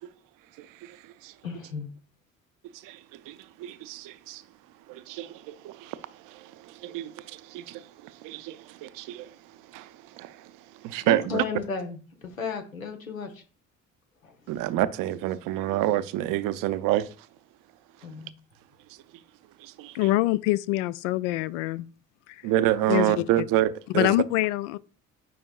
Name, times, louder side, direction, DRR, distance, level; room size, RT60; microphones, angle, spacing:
voice 1, 0.6-1.0 1.2-1.3 2.8-4.4 4.9-6.0 6.2-9.3 9.7-9.9 10.1-10.5 10.8-11.4 14.5-17.1 19.6-20.0 22.4-24.1, right 14 dB, 55° right, 0.6 m, -28 dB
voice 2, 1.4-1.9 11.0-13.4 14.2-14.3 18.0-18.3, left 5 dB, 90° left, 0.9 m, -34 dB
voice 3, 19.9-21.9 22.3-22.5 22.9-23.4 23.9-24.8, left 16 dB, 65° left, 0.5 m, -25 dB
9.3 x 5.3 x 2.3 m
figure-of-eight pair, 45°, 40 cm